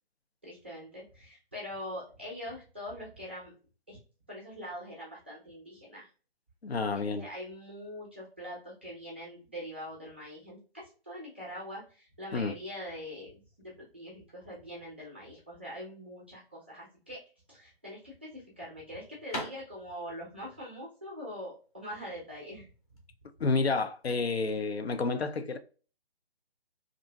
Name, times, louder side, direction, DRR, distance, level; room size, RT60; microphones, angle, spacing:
voice 1, 0.4-3.5 3.9-4.0 4.3-6.1 6.9-17.2 17.5-22.7, equal, 10° right, 0.4 m, -43 dB
voice 2, 6.6-7.3 12.3-12.5 23.4-25.6, left 4 dB, 85° left, 0.5 m, -30 dB
sound 1, 17.4-23.1, left 1 dB, 35° left, 0.7 m, -44 dB
2.7 x 2.5 x 2.2 m
figure-of-eight pair, 145°, 31 cm